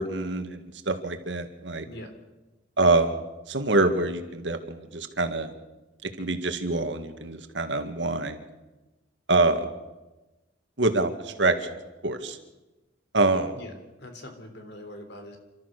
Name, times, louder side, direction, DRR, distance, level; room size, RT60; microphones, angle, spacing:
voice 1, 0.0-1.8 2.8-3.2 3.5-5.5 6.0-8.4 9.3-9.7 10.8-11.7 12.0-12.4 13.1-13.5, right 2 dB, 80° right, 7 dB, 2.0 m, -25 dB
voice 2, 14.0-15.4, left 1 dB, 65° left, 6 dB, 3.5 m, -42 dB
29.5 x 13.5 x 6.7 m, 1.1 s
head